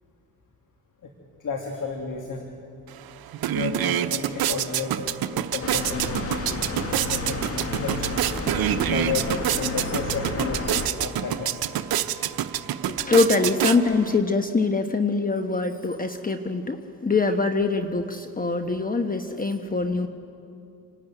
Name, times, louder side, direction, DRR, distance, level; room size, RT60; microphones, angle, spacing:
voice 1, 1.4-2.5 3.5-5.0 5.3-6.5 7.0-7.4 7.7-8.5 8.8-11.7 13.4-13.5, left 5 dB, 55° left, 2 dB, 2.6 m, -32 dB
sound 1, 2.9-3.0 3.3-14.2, right 11 dB, 75° right, 1.0 m, -27 dB
sound 2, 5.6-10.9, left 2 dB, 40° left, 2.2 m, -31 dB
voice 2, 12.9-20.1, left 3 dB, 25° left, 6 dB, 1.2 m, -24 dB
27.0 x 12.5 x 9.2 m, 2.6 s
supercardioid pair, 60°, 37 cm